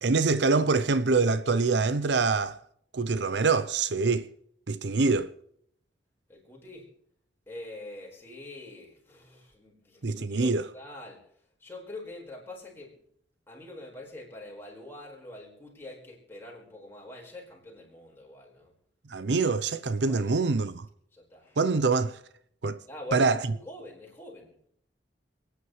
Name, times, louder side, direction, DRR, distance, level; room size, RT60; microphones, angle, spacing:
voice 1, 0.0-2.6 2.9-4.3 4.7-5.3 10.0-10.6 19.1-20.9 21.6-22.2 22.6-22.8 23.1-23.4, right 4 dB, 70° right, 0.6 m, -25 dB
voice 2, 6.3-6.9 7.5-11.2 11.6-13.0 13.5-18.7 20.1-20.3 21.1-21.6 22.9-24.7, left 2 dB, 15° left, 4.8 m, -44 dB
28.5 x 9.9 x 3.2 m
head